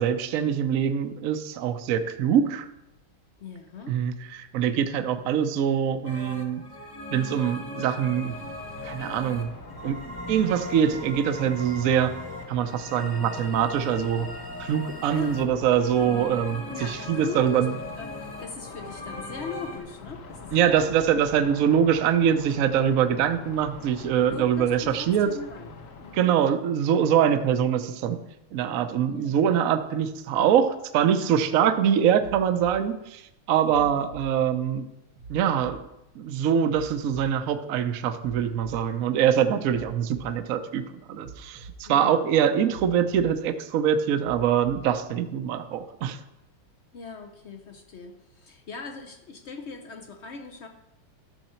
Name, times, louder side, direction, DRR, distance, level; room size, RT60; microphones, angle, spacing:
voice 1, 0.0-2.7 3.9-6.6 7.1-8.3 8.8-9.5 9.8-10.0 10.3-12.1 12.5-14.3 14.6-17.7 20.5-25.3 26.1-28.2 28.5-33.2 33.5-34.8 35.3-35.8 36.2-40.8 41.1-46.2, right 8 dB, 65° right, 8 dB, 0.8 m, -24 dB
voice 2, 3.4-3.9 15.1-15.5 16.7-17.7 18.0-18.1 18.4-21.1 24.2-25.7 26.0-26.5 29.1-29.4 33.6-34.1 41.9-42.6 46.9-50.7, left 4 dB, 75° left, 4 dB, 0.6 m, -40 dB
sound 1, 6.0-19.8, left 2 dB, 15° left, 1.0 m, -39 dB
sound 2, 8.2-26.3, left 3 dB, 55° left, 1.4 m, -44 dB
sound 3, 32.2-32.7 33.7-34.2 35.2-35.7 36.7-37.3 38.2-38.8 39.7-40.3 41.2-41.8 42.7-43.3 44.2-44.8 45.7-45.8, right 5 dB, 85° right, 2.9 m, -45 dB
13.0 x 6.6 x 4.4 m, 0.89 s
omnidirectional pair, 2.3 m